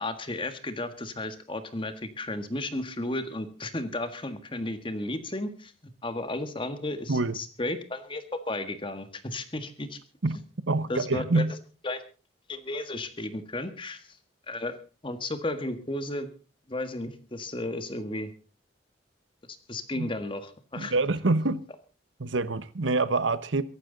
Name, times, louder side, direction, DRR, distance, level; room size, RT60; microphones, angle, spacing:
voice 1, 0.0-5.7 6.0-10.0 10.9-11.4 11.8-12.0 12.5-14.2 14.5-14.8 15.0-16.3 16.7-18.3 19.7-20.9, left 2 dB, 25° left, 1.7 m, -33 dB
voice 2, 10.7-11.5 20.0-20.1 20.7-21.6 22.2-23.6, right 3 dB, 90° right, 1.0 m, -26 dB
23.5 x 11.0 x 4.0 m
head